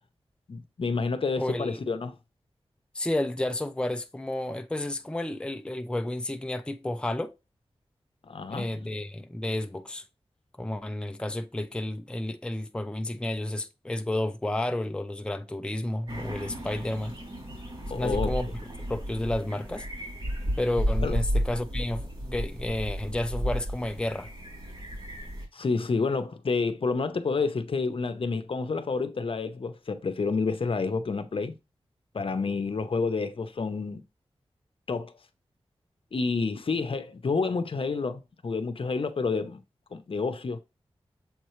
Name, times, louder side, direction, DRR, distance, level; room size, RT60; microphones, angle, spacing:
voice 1, 0.5-2.1 8.2-8.7 17.9-18.3 21.0-21.2 25.5-31.5 32.1-34.0 34.9-35.1 36.1-39.6 39.9-40.6, left 4 dB, 60° left, 0.8 m, -29 dB
voice 2, 1.4-1.8 2.9-7.3 8.5-10.0 10.6-17.1 17.9-18.5 18.9-19.9 20.6-24.3, left 1 dB, 10° left, 0.5 m, -31 dB
sound 1, 16.1-25.4, equal, 45° right, 3.0 m, -33 dB
7.3 x 4.5 x 3.1 m
wide cardioid pair, 105°, 10 cm